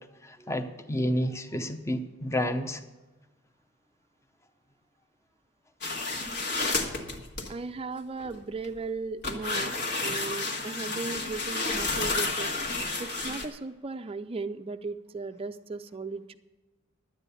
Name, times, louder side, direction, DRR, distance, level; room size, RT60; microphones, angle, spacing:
voice 1, 0.2-2.8, equal, 15° left, 0.7 m, -30 dB
sound 1, 5.8-7.5 8.2-8.7 9.2-13.5, left 3 dB, 55° left, 1.6 m, -31 dB
voice 2, 7.5-9.7 10.0-12.5 13.0-16.4, right 3 dB, 25° right, 0.4 m, -36 dB
11.5 x 9.0 x 6.9 m
head